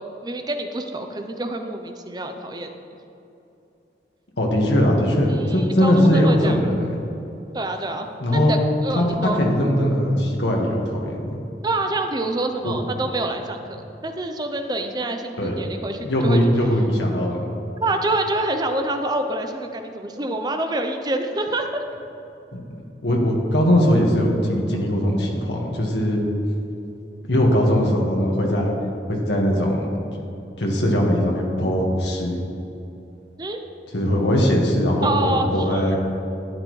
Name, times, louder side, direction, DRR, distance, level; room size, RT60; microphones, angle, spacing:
voice 1, 0.2-2.7 5.3-6.6 7.5-8.6 8.8-9.4 11.6-16.4 17.8-21.8 33.4-33.6 35.0-36.0, right 2 dB, 25° right, 5 dB, 0.6 m, -26 dB
voice 2, 4.4-7.0 8.2-8.5 8.9-11.4 12.6-12.7 15.4-15.5 16.0-17.5 22.5-22.6 23.0-26.2 27.3-28.7 29.1-29.9 30.6-32.4 33.9-36.0, equal, 85° left, -1 dB, 1.6 m, -20 dB
12.5 x 9.4 x 3.2 m, 2.9 s
head